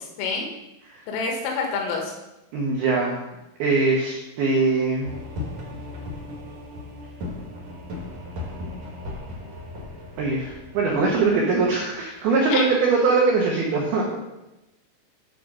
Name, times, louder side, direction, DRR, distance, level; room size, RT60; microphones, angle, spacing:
voice 1, 1.1-2.1 12.5-12.6, left 4 dB, 85° left, 0 dB, 3.7 m, -26 dB
voice 2, 2.5-3.2 3.6-5.1 10.2-14.0, right 4 dB, 80° right, -2 dB, 2.2 m, -22 dB
sound 1, 5.0-12.5, left 2 dB, 55° right, 2.0 m, -37 dB
9.4 x 3.6 x 6.1 m, 0.96 s
omnidirectional pair, 5.7 m